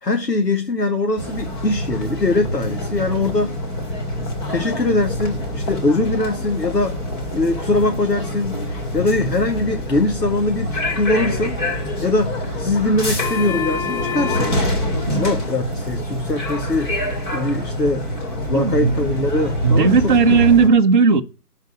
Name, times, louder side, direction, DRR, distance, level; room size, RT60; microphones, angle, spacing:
voice 1, 0.0-3.5 4.5-7.0 7.3-8.6 8.9-11.6 12.0-14.5 15.1-16.9 17.3-18.1 18.5-20.1, left 2 dB, 85° left, 2.0 m, -22 dB
sound 1, 1.2-20.7, left 1 dB, 30° left, 3.2 m, -25 dB
voice 2, 18.5-19.0 19.6-21.2, right 5 dB, 30° right, 0.7 m, -15 dB
12.0 x 4.8 x 7.2 m
figure-of-eight pair, 140°, 48 cm